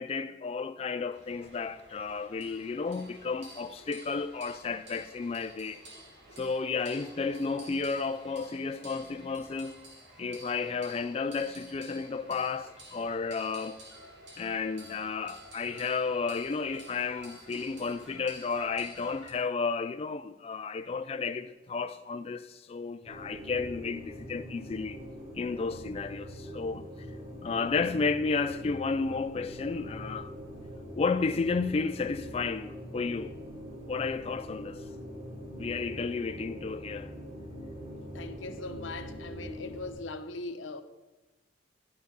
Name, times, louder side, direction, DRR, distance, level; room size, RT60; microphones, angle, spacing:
voice 1, 0.0-5.8 6.4-9.8 10.2-13.8 14.4-25.0 25.3-26.9 27.4-30.3 31.0-33.3 33.9-34.9 35.6-37.1, left 4 dB, 30° left, 0.3 m, -32 dB
sound 1, 1.1-19.3, right 1 dB, 65° right, 2.8 m, -51 dB
sound 2, 23.0-39.9, equal, 35° right, 4.9 m, -43 dB
voice 2, 38.1-40.8, left 3 dB, 85° left, 0.9 m, -40 dB
11.5 x 6.7 x 6.7 m
head